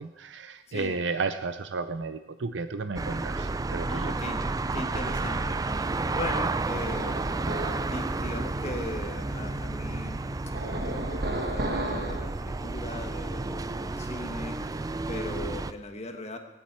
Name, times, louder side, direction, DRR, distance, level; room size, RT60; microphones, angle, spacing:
voice 1, 0.0-4.2, right 4 dB, 70° right, 10 dB, 0.6 m, -33 dB
voice 2, 0.7-1.0 3.9-4.4 4.7-5.6 6.1-7.3 7.9-10.4 11.2-16.4, left 2 dB, 35° left, 5 dB, 1.2 m, -39 dB
sound 1, 3.0-15.7, right 3 dB, 20° right, 0.4 m, -31 dB
sound 2, 6.9-8.0 10.5-12.3, right 1 dB, 55° right, 1.5 m, -33 dB
19.0 x 9.2 x 4.5 m, 1.1 s
head